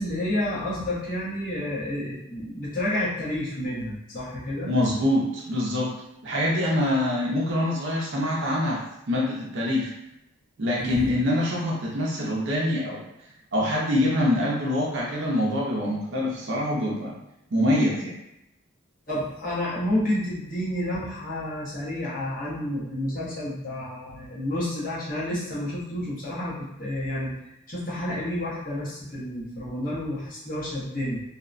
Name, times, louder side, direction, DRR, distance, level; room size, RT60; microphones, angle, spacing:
voice 1, 0.0-4.7 10.8-11.0 19.1-27.4 27.7-31.2, left 1 dB, 40° left, -8 dB, 1.0 m, -30 dB
voice 2, 4.7-5.9 6.2-8.8 9.1-9.9 10.6-13.0 13.5-17.2 17.5-18.1, left 1 dB, 60° right, -4 dB, 0.5 m, -25 dB
2.7 x 2.1 x 2.4 m, 0.84 s
head